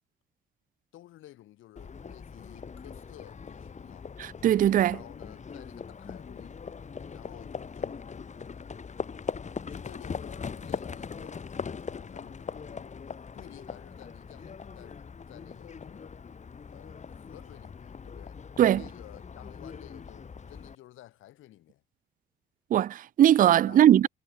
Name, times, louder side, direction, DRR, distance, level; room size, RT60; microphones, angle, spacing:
voice 1, 0.9-4.1 4.8-6.6 7.1-8.0 9.7-11.4 11.7-12.9 13.3-16.1 16.7-18.4 18.8-21.8 23.6-24.1, left 14 dB, 85° left, 5.3 m, -52 dB
Livestock farm animals working animals, 1.8-20.7, left 5 dB, 35° left, 2.0 m, -41 dB
voice 2, 4.2-5.0 18.6-18.8 22.7-24.1, right 11 dB, 45° right, 0.4 m, -20 dB
cardioid pair, 90°, 20 cm